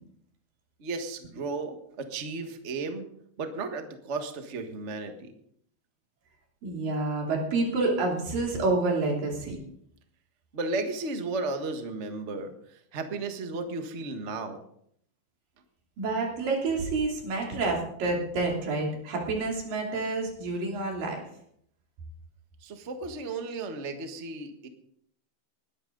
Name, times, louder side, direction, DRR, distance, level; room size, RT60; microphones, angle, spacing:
voice 1, 0.8-3.1 3.4-5.3 10.5-14.6 22.6-24.7, right 3 dB, 50° right, 6 dB, 0.8 m, -34 dB
voice 2, 6.6-9.6 16.0-21.2, right 3 dB, 90° right, 0 dB, 4.8 m, -28 dB
20.0 x 11.5 x 3.9 m, 0.69 s
omnidirectional pair, 3.8 m